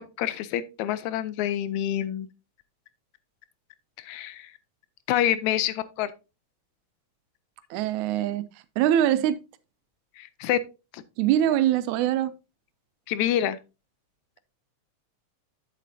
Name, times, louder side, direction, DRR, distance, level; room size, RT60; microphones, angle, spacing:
voice 1, 0.0-2.3 4.0-4.5 5.1-6.1 10.2-10.6 10.9-11.0 13.1-13.6, left 11 dB, 80° left, 1.9 m, -27 dB
voice 2, 7.7-8.4 8.8-9.4 11.2-12.3, right 11 dB, 80° right, 2.0 m, -23 dB
8.3 x 7.4 x 2.7 m
omnidirectional pair, 3.4 m